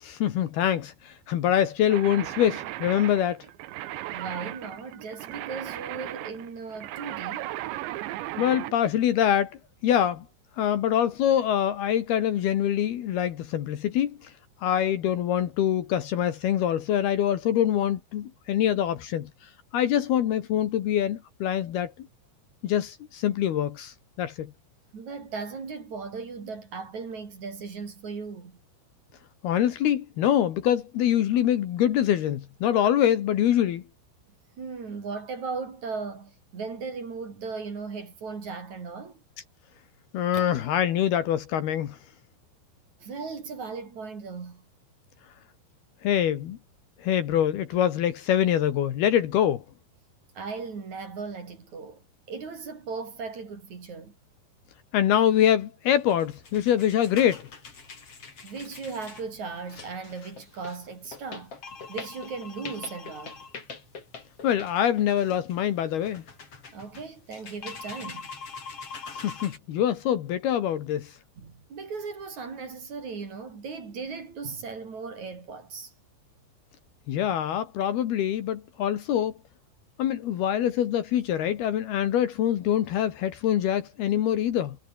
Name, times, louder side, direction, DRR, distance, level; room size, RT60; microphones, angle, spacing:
voice 1, 0.0-3.4 8.4-10.2 10.6-14.3 14.6-19.3 19.7-21.9 22.6-24.5 29.4-33.8 40.1-42.0 46.0-46.6 47.0-49.6 54.9-57.5 64.4-66.2 69.1-71.1 77.1-79.3 80.0-84.8, left 10 dB, 65° left, 3.3 m, -24 dB
sound 1, 1.9-8.8, right 15 dB, 75° right, 3.3 m, -36 dB
voice 2, 4.1-7.6 24.9-28.6 34.6-39.2 40.3-40.5 43.0-44.6 50.3-54.1 58.4-61.5 61.9-63.4 66.7-68.3 71.4-75.9, right 4 dB, 40° right, 4.6 m, -37 dB
sound 2, 56.0-69.6, left 5 dB, 35° left, 4.4 m, -43 dB
omnidirectional pair, 5.3 m